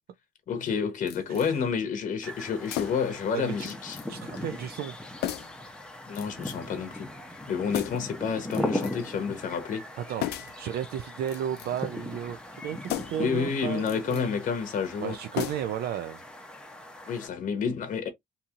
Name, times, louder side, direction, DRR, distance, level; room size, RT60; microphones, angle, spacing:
voice 1, 0.5-4.0 6.1-7.1 7.5-9.9 13.2-15.2 17.1-18.1, left 6 dB, 50° left, 0.8 m, -29 dB
sound 1, 1.1-1.5 2.6-3.2 3.6-4.1 4.3-4.5 5.2-5.6 6.1-6.7 7.7-8.1 8.5-9.1 10.2-10.6 11.2-11.9 12.8-13.3 13.8-14.3 15.3-15.9 16.2-16.3, left 13 dB, 75° left, 0.5 m, -35 dB
voice 2, 1.3-1.6 3.3-3.7 4.1-5.0 10.0-14.3 15.0-16.2, right 10 dB, 65° right, 0.4 m, -34 dB
sound 2, 2.2-17.3, left 1 dB, 5° left, 0.7 m, -39 dB
2.8 x 2.7 x 2.4 m
cardioid pair, 110°, 17 cm